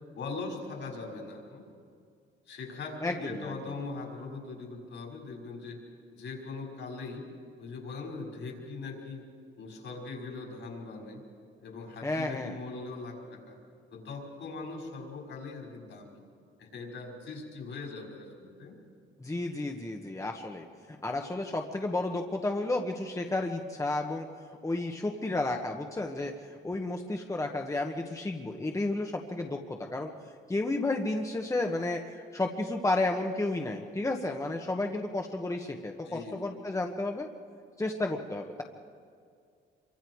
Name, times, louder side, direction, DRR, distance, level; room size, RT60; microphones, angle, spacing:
voice 1, 0.2-1.6 2.5-5.8 6.1-7.3 7.6-9.3 9.6-11.2 11.6-13.6 13.9-16.2 16.6-18.8 36.1-36.4, left 3 dB, 70° left, 0 dB, 5.5 m, -41 dB
voice 2, 3.0-3.5 12.0-12.6 19.2-20.7 21.0-24.3 24.6-26.3 26.6-30.1 30.5-37.3 37.8-38.6, left 2 dB, 15° left, 2 dB, 1.4 m, -32 dB
26.5 x 24.0 x 4.8 m, 2.2 s
cardioid pair, 90°, 20 cm